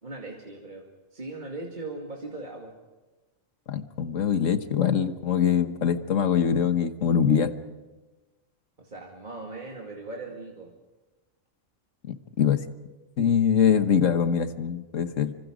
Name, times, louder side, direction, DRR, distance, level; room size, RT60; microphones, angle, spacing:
voice 1, 0.0-2.8 8.8-10.7, right 2 dB, 40° right, 0 dB, 2.5 m, -39 dB
voice 2, 3.7-7.5 12.0-12.6 13.2-15.4, left 8 dB, 85° left, 10 dB, 1.6 m, -23 dB
27.5 x 25.0 x 5.2 m, 1.2 s
omnidirectional pair, 1.3 m